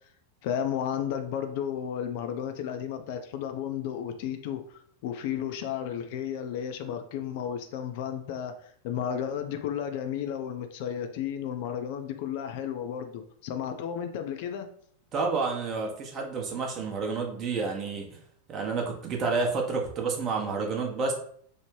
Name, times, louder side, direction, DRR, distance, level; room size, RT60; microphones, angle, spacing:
voice 1, 0.4-14.7, left 9 dB, 50° left, 6 dB, 0.3 m, -33 dB
voice 2, 15.1-18.1 18.5-21.1, right 4 dB, 30° right, 1 dB, 0.7 m, -29 dB
3.1 x 2.0 x 3.1 m, 0.62 s
figure-of-eight pair, 90°, 0 cm